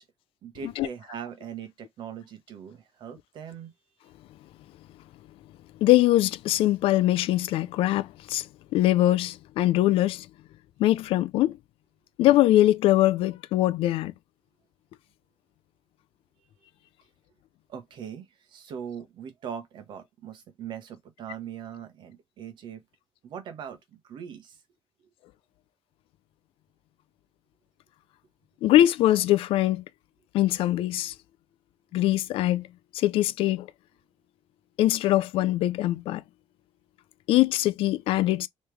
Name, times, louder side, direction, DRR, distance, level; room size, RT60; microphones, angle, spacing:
voice 1, 0.4-3.7 17.7-22.8 23.2-24.6, right 8 dB, 55° right, 1.1 m, -40 dB
voice 2, 5.8-10.3 10.8-11.6 12.2-14.1 28.6-29.8 30.3-31.1 31.9-32.7 32.9-33.7 34.8-36.2 37.3-38.5, left 15 dB, 75° left, 0.4 m, -22 dB
3.2 x 3.1 x 3.4 m
cardioid pair, 170°, 10 cm